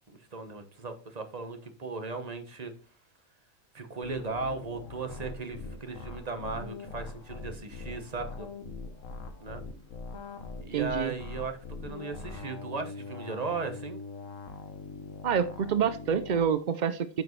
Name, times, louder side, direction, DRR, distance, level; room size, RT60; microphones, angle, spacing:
voice 1, 0.1-2.7 3.7-8.5 9.4-9.6 10.6-14.0, right 4 dB, 30° right, 1.1 m, -37 dB
sound 1, 4.0-16.4, left 4 dB, 65° left, 1.4 m, -42 dB
voice 2, 10.7-11.1 15.2-17.2, right 7 dB, 65° right, 0.4 m, -27 dB
9.1 x 6.0 x 3.1 m
omnidirectional pair, 1.4 m